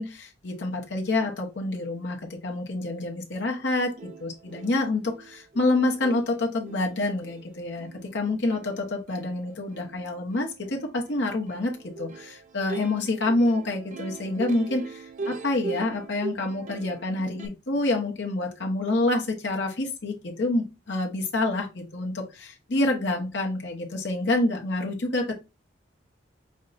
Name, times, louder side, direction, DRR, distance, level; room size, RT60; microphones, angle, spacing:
voice 1, 0.0-2.2 2.4-25.3, left 2 dB, 65° left, 0 dB, 0.9 m, -27 dB
Plucked string instrument, 3.6-3.7 3.9-17.5, right 3 dB, 40° right, 0.4 m, -41 dB
5.4 x 2.2 x 3.9 m, 0.27 s
head